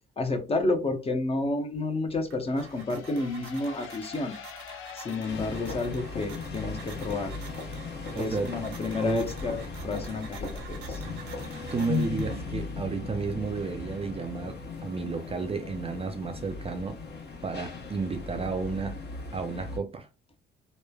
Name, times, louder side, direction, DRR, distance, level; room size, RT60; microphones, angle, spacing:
voice 1, 0.2-4.3 4.9-7.3 8.1-11.0, left 2 dB, 30° left, 0.7 m, -30 dB
sound 1, 2.1-12.7, right 6 dB, 75° right, 0.8 m, -48 dB
sound 2, 2.5-7.2, left 8 dB, 80° left, 0.5 m, -46 dB
sound 3, 5.3-19.8, left 4 dB, 55° left, 1.0 m, -37 dB
voice 2, 8.1-8.7 9.0-9.3 11.7-17.0 17.4-19.0 19.3-20.1, right 4 dB, 30° right, 0.4 m, -32 dB
3.0 x 2.1 x 2.2 m
cardioid pair, 90°, 20 cm